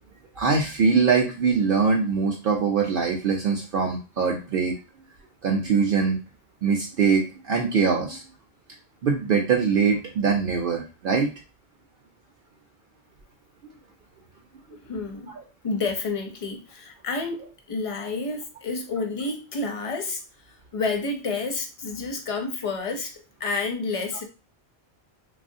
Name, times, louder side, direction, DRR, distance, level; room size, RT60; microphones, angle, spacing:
voice 1, 0.4-4.7 5.4-6.2 6.6-8.2 9.0-11.3 15.4-15.5, right 5 dB, 60° right, 1 dB, 0.7 m, -22 dB
voice 2, 14.7-15.4 15.6-20.2 20.7-23.1 23.4-24.2, left 3 dB, 45° left, 4 dB, 0.5 m, -29 dB
3.1 x 2.4 x 2.6 m, 0.32 s
omnidirectional pair, 1.1 m